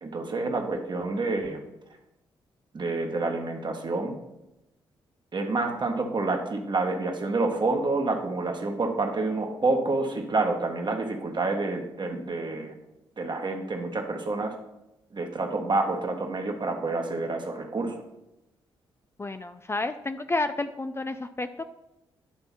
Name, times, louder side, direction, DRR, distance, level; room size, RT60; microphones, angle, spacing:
voice 1, 0.0-1.6 2.7-4.2 5.3-12.7 13.2-14.5 15.1-18.0, right 3 dB, 40° right, 4 dB, 1.5 m, -28 dB
voice 2, 19.2-21.6, left 2 dB, 20° left, 9 dB, 0.4 m, -30 dB
10.0 x 3.5 x 5.7 m, 0.91 s
hypercardioid pair, 40°, 12 cm